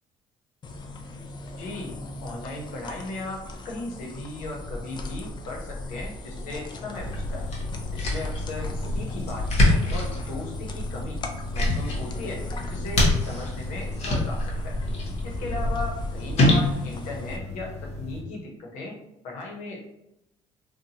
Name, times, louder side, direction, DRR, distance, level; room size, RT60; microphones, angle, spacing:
sound 1, 0.6-17.4, left 1 dB, 40° left, 0.4 m, -37 dB
voice 1, 1.6-7.5 7.9-11.2 11.5-14.7 15.2-18.9 19.2-19.8, left 2 dB, 90° left, -1 dB, 0.8 m, -37 dB
sound 2, 7.0-18.2, left 1 dB, 60° left, 1.0 m, -27 dB
2.7 x 2.2 x 2.7 m, 0.85 s
cardioid pair, 95°, 12 cm